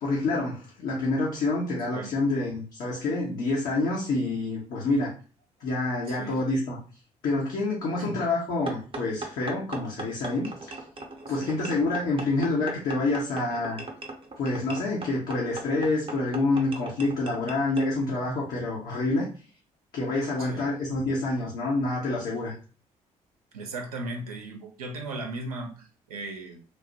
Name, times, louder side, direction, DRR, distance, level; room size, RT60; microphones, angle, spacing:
voice 1, 0.0-5.1 5.6-6.8 7.2-10.7 11.3-13.8 14.4-19.3 19.9-22.5, left 2 dB, 55° left, -4 dB, 0.8 m, -27 dB
voice 2, 6.1-6.4 8.0-8.2 11.3-11.6 20.4-20.7 23.5-26.6, right 2 dB, 80° right, 2 dB, 0.5 m, -37 dB
sound 1, 8.7-17.9, right 2 dB, 30° right, 0.7 m, -39 dB
3.1 x 2.1 x 2.7 m, 0.38 s
figure-of-eight pair, 40°, 18 cm